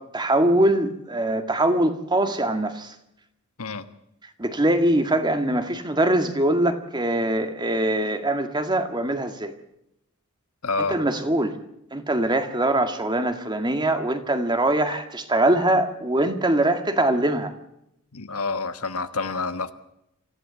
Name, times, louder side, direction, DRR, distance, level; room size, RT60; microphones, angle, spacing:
voice 1, 0.0-2.9 4.4-9.5 10.9-11.6 11.9-17.5, right 1 dB, 20° right, 7 dB, 1.9 m, -22 dB
voice 2, 10.6-11.0 18.1-19.7, left 4 dB, 85° left, 10 dB, 1.4 m, -28 dB
25.5 x 15.0 x 8.2 m, 0.82 s
head